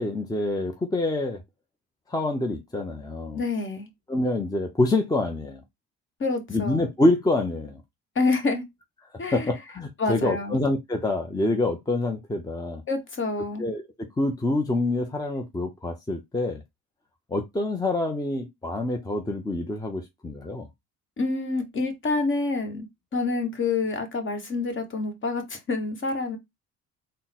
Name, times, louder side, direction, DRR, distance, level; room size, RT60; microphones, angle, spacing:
voice 1, 0.0-1.4 2.1-3.4 4.1-5.6 6.5-7.8 9.1-12.8 13.6-16.6 17.3-20.7, left 2 dB, 10° left, 0.7 m, -26 dB
voice 2, 3.3-3.9 6.2-6.8 8.1-8.6 9.2-9.5 10.0-10.6 12.9-13.6 21.2-22.9 23.1-26.4, left 3 dB, 35° left, 1.3 m, -27 dB
3.8 x 2.2 x 4.1 m
supercardioid pair, 80°, 33 cm